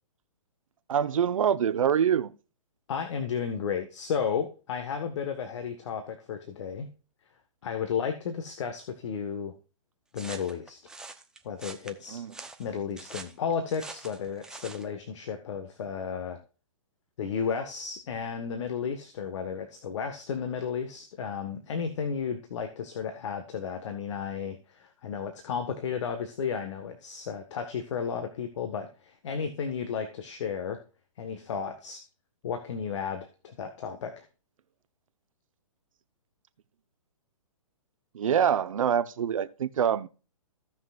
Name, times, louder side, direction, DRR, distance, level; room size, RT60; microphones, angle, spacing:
voice 1, 0.9-2.3 12.1-12.3 38.1-40.1, right 8 dB, 70° right, 0.9 m, -25 dB
voice 2, 2.9-6.9 7.6-9.5 10.1-10.8 11.4-12.2 12.6-16.4 17.2-30.8 31.2-32.0 32.4-34.2, left 6 dB, 60° left, 1.5 m, -33 dB
sound 1, 10.1-14.9, right 3 dB, 5° right, 0.7 m, -44 dB
16.0 x 6.1 x 2.5 m
hypercardioid pair, 135°, 18 cm